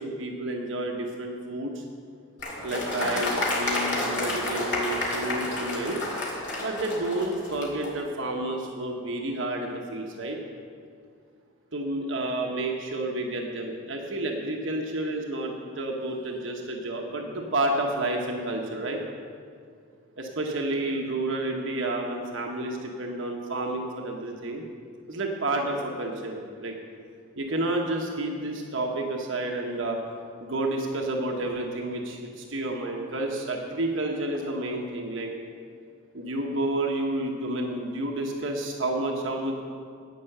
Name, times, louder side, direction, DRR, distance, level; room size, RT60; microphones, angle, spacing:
voice 1, 0.0-1.8 2.6-6.0 6.6-10.4 11.7-19.0 20.2-24.6 25.1-26.7 27.4-30.0 30.4-35.3 36.1-39.6, right 2 dB, 65° right, 1 dB, 1.1 m, -30 dB
Applause, 2.4-7.9, left 1 dB, 55° left, 2.5 m, -30 dB
10.5 x 8.8 x 6.6 m, 2.3 s
head